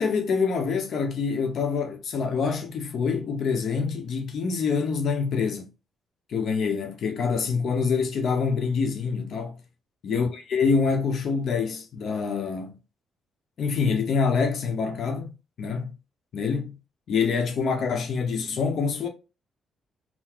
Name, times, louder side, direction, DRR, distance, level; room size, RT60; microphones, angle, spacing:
voice 1, 0.0-5.7 6.3-9.6 10.0-12.7 13.6-15.9 16.3-16.8 17.1-19.1, left 5 dB, 65° left, 0.8 m, -26 dB
3.9 x 2.1 x 4.3 m
cardioid pair, 90°, 0 cm